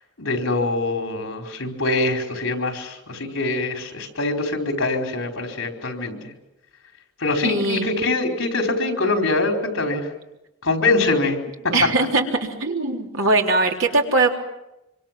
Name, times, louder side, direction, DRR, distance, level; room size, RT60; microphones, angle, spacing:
voice 1, 0.2-6.2 7.2-10.1 10.6-11.4 11.6-11.7, left 2 dB, 80° left, 4 dB, 4.7 m, -23 dB
voice 2, 7.4-7.9 11.7-14.4, right 3 dB, 80° right, 2 dB, 3.7 m, -21 dB
26.0 x 25.0 x 7.6 m, 0.91 s
head